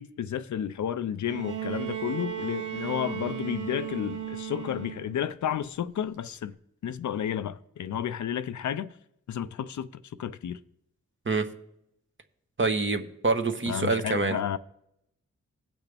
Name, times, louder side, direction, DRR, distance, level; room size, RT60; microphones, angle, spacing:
voice 1, 0.0-6.5 6.8-8.9 9.3-9.9 10.2-10.6 13.7-14.6, left 9 dB, 70° left, 0.5 m, -31 dB
Bowed string instrument, 1.2-5.3 6.5-6.6, right 10 dB, 85° right, 0.8 m, -35 dB
voice 2, 12.6-14.4, right 3 dB, 40° right, 1.1 m, -26 dB
17.0 x 5.9 x 3.4 m
cardioid pair, 45°, 30 cm